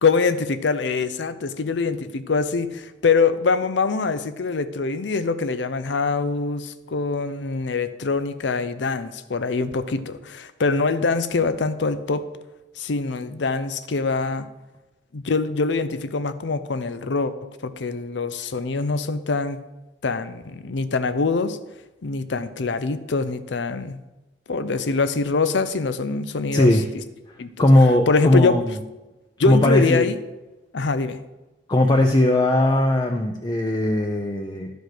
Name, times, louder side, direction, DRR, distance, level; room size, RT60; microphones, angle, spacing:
voice 1, 0.0-12.3 12.8-14.5 15.1-17.3 17.6-19.6 20.0-21.6 22.0-24.0 24.5-27.0 27.4-27.7 28.1-28.6 29.4-30.2 30.7-31.2, left 4 dB, 75° left, 12 dB, 0.6 m, -24 dB
voice 2, 26.5-26.8 27.6-28.6 29.5-30.0 31.7-34.7, left 1 dB, 25° left, 4 dB, 0.5 m, -18 dB
11.5 x 5.1 x 6.1 m, 1.1 s
head